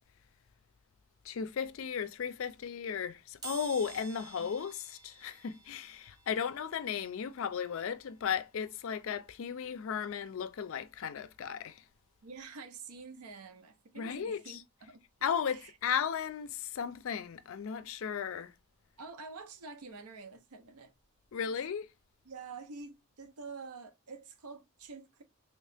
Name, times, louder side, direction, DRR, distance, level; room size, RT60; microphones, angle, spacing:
voice 1, 1.2-11.8 14.0-14.6 15.2-18.5 21.3-21.9, left 7 dB, 60° left, 0.4 m, -35 dB
sound 1, 3.4-14.1 14.6-14.7 15.8-15.9 16.2-18.3 18.6-21.3 21.6-21.8 22.1-22.2, right 6 dB, 20° right, 0.6 m, -55 dB
voice 2, 12.2-15.0 15.5-15.7 19.0-20.9 21.4-21.6 22.2-25.2, right 4 dB, 85° right, 0.6 m, -48 dB
3.0 x 2.7 x 3.4 m
head